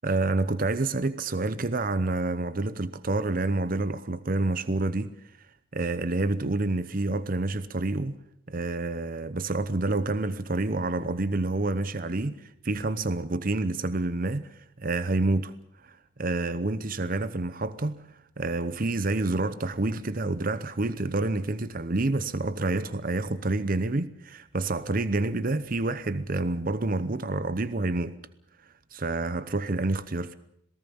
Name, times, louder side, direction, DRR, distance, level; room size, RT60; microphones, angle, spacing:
voice 1, 0.0-5.1 5.7-8.1 8.5-15.5 15.8-18.0 18.4-28.1 28.9-30.3, right 2 dB, 45° right, 0.8 m, -28 dB
27.0 x 18.5 x 7.1 m
head